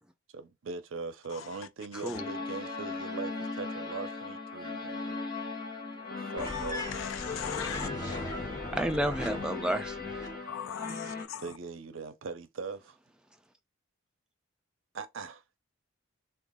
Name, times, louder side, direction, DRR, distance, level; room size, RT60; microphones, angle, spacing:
voice 1, 0.3-5.2 6.3-6.8 9.4-9.8 11.4-13.0 14.9-15.4, right 4 dB, 65° right, 0.5 m, -41 dB
sound 1, 2.1-11.2, left 3 dB, 45° left, 1.1 m, -38 dB
voice 2, 6.4-7.9 10.5-11.5, left 9 dB, 70° left, 0.4 m, -39 dB
sound 2, 6.4-10.4, left 1 dB, 20° left, 0.7 m, -38 dB
voice 3, 8.7-10.2, right 1 dB, 5° right, 0.3 m, -31 dB
3.0 x 2.4 x 3.6 m
head